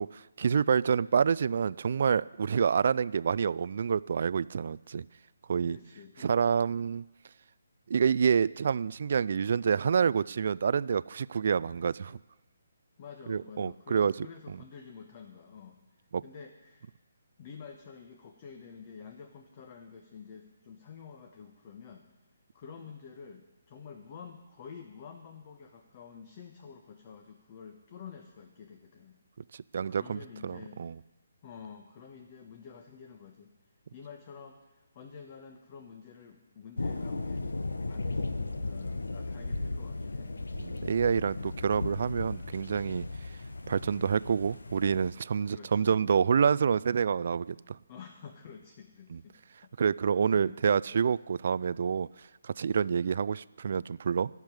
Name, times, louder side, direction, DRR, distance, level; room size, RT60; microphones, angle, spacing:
voice 1, 0.0-5.1 5.5-5.8 6.2-7.0 7.9-12.2 13.3-14.1 14.5-14.6 16.1-16.2 29.5-31.0 40.6-43.1 43.7-47.8 49.1-49.2 49.8-52.1 52.4-54.3, right 6 dB, 55° right, 19 dB, 0.3 m, -28 dB
voice 2, 5.6-6.4 13.0-15.8 16.2-16.9 17.4-22.1 22.5-29.2 29.9-30.8 31.4-33.5 33.9-37.6 37.9-40.4 40.7-40.9 45.5-46.0 47.9-49.3 49.6-49.7 50.4-50.6, left 6 dB, 35° left, 4 dB, 1.3 m, -49 dB
sound 1, 36.8-45.1, left 2 dB, 75° left, 1.0 m, -36 dB
11.5 x 7.3 x 9.9 m, 1.0 s
figure-of-eight pair, 140°, 0 cm